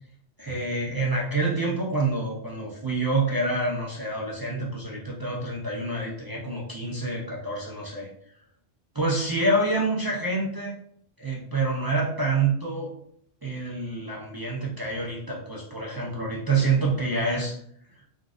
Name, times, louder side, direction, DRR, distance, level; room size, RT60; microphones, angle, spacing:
voice 1, 0.4-8.1 8.9-10.7 11.2-12.9 13.4-17.6, right 2 dB, 30° right, -4 dB, 0.4 m, -27 dB
3.8 x 2.4 x 2.5 m, 0.67 s
omnidirectional pair, 1.1 m